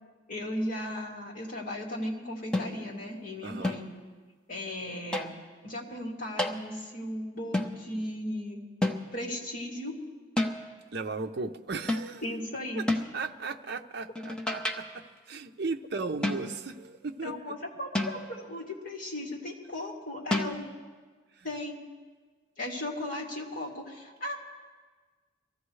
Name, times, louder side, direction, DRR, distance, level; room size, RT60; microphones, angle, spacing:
voice 1, 0.3-3.9 4.5-5.4 5.6-8.6 9.1-10.0 12.2-12.8 17.2-20.6 21.4-21.8 22.6-24.4, left 1 dB, 45° left, -2 dB, 2.5 m, -36 dB
sound 1, 2.5-3.0 3.6-4.0 5.1-5.5 6.4-6.7 7.5-7.8 8.8-9.3 10.4-10.7 11.9-12.2 12.9-13.2 14.2-15.0 16.2-16.7 17.9-18.5 20.3-20.5, left 1 dB, 5° left, 0.8 m, -31 dB
voice 2, 3.4-3.8 10.9-12.2 12.7-12.8 13.1-17.5, right 4 dB, 55° right, 6 dB, 0.6 m, -36 dB
24.0 x 14.5 x 3.2 m, 1.4 s
head